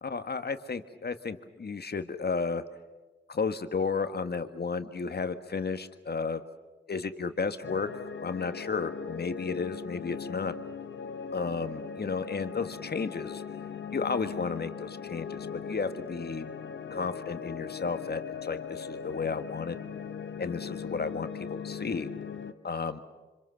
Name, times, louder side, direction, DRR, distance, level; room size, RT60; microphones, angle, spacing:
voice 1, 0.0-2.6 3.3-6.4 6.9-10.5 11.3-13.4 13.9-16.4 16.9-19.8 20.4-22.1 22.6-23.0, left 5 dB, 55° left, 10 dB, 1.7 m, -33 dB
sound 1, 7.6-22.5, left 6 dB, 80° left, 1.3 m, -39 dB
26.5 x 26.0 x 6.6 m, 1.2 s
cardioid pair, 45°, 19 cm